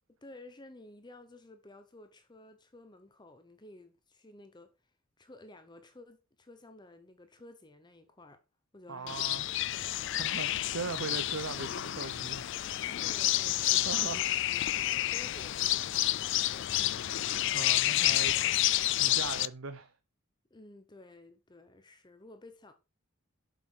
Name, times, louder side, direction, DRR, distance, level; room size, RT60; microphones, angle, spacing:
voice 1, 0.2-8.4 8.7-9.4 9.7-10.2 11.0-11.2 12.9-14.2 14.5-17.2 20.5-22.7, left 2 dB, 20° left, 0.8 m, -53 dB
voice 2, 8.9-9.5 10.1-12.8 13.8-14.2 17.5-18.4 19.0-19.9, right 4 dB, 65° right, 0.7 m, -39 dB
sound 1, 9.1-19.5, left 14 dB, 60° left, 0.4 m, -30 dB
7.4 x 6.5 x 4.5 m
head